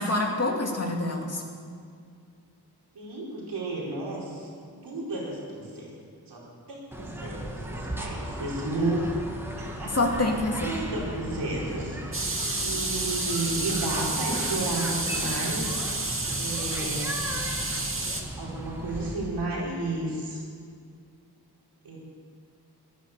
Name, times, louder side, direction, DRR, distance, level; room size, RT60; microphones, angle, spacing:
voice 1, 0.0-1.4 9.9-10.7, left 2 dB, 40° left, 0 dB, 2.6 m, -26 dB
voice 2, 2.9-5.9 6.3-9.1 9.8-9.9 10.6-17.1 18.4-20.4 21.8-22.0, right 2 dB, 90° right, -4 dB, 4.9 m, -33 dB
sound 1, 6.9-19.1, right 1 dB, 5° right, 2.2 m, -36 dB
sound 2, 12.1-18.2, right 2 dB, 30° right, 2.3 m, -30 dB
17.0 x 11.0 x 6.9 m, 2.2 s
cardioid pair, 70°, 40 cm